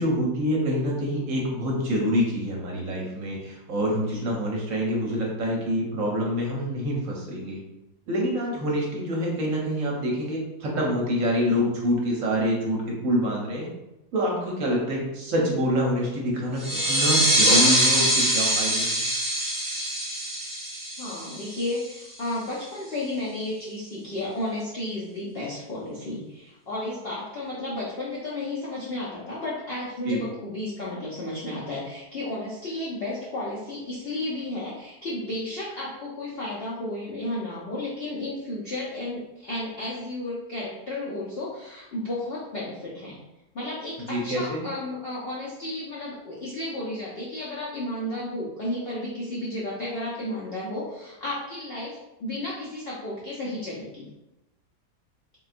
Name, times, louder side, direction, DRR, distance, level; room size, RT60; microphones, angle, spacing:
voice 1, 0.0-7.6 8.1-13.7 14.1-19.0 30.1-30.2 44.1-44.6, equal, 65° right, -2 dB, 1.0 m, -26 dB
sound 1, 16.6-21.9, equal, 30° right, 1.0 m, -23 dB
voice 2, 21.0-43.2 43.5-54.1, left 1 dB, 65° left, -6 dB, 0.6 m, -33 dB
3.7 x 2.2 x 2.4 m, 0.96 s
omnidirectional pair, 1.7 m